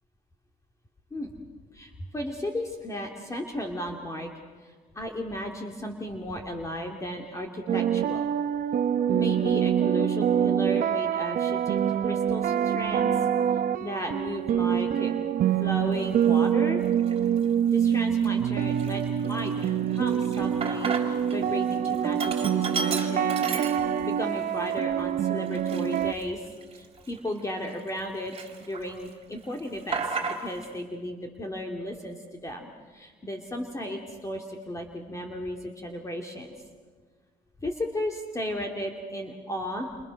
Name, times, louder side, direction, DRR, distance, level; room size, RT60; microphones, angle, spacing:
voice 1, 1.7-4.3 4.6-8.3 9.1-13.1 13.8-15.1 15.6-16.8 17.7-26.4 26.7-36.5 37.6-40.0, left 1 dB, 20° left, 2 dB, 2.6 m, -35 dB
sound 1, 7.7-26.1, right 9 dB, 55° right, 0.9 m, -25 dB
Sink (filling or washing), 16.1-16.3 16.9-17.5 17.9-18.0 18.2-21.4 21.7-24.2 24.7-24.8 25.5-28.0 28.3-29.1 29.4-30.7, right 4 dB, 35° right, 3.8 m, -34 dB
29.0 x 26.5 x 6.4 m, 1.5 s
cardioid pair, 110°, 17 cm